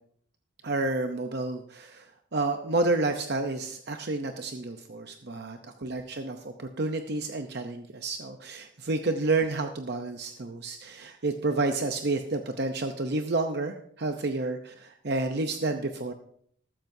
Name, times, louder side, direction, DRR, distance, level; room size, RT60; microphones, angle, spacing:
voice 1, 0.6-2.1 2.3-16.1, right 2 dB, 55° right, 6 dB, 0.7 m, -30 dB
13.5 x 13.5 x 2.7 m, 0.64 s
head